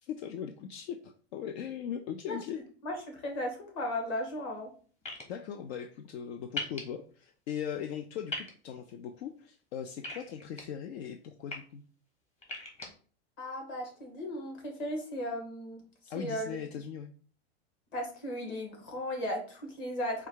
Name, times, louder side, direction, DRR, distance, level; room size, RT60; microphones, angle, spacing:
voice 1, 0.0-2.6 5.3-8.3 8.6-11.8 16.0-17.1, left 8 dB, 70° left, 7 dB, 0.6 m, -39 dB
voice 2, 2.8-4.7 13.4-15.8 16.1-16.6 17.9-20.3, left 1 dB, 40° left, 1 dB, 1.8 m, -36 dB
sound 1, 5.0-5.2 6.6-6.8 8.3-8.5 10.0-10.6 11.3-11.6 12.4-12.9, left 2 dB, 20° left, 1.2 m, -37 dB
4.6 x 2.4 x 4.6 m, 0.42 s
supercardioid pair, 145°, 33 cm